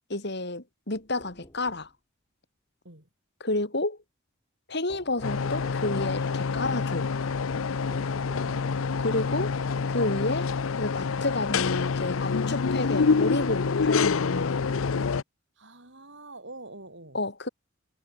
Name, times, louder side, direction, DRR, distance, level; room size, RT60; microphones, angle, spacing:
voice 1, 0.0-1.9 3.4-4.0 4.7-7.1 9.0-9.5 9.9-10.5 10.8-14.6 17.1-17.5, left 2 dB, 55° left, 3.9 m, -30 dB
sound 1, 0.9-1.9 4.9-6.2 7.9-9.1, left 1 dB, 20° left, 7.6 m, -50 dB
sound 2, 5.2-15.2, left 5 dB, 80° left, 0.6 m, -27 dB
voice 2, 15.6-17.2, right 2 dB, 60° right, 6.7 m, -45 dB
head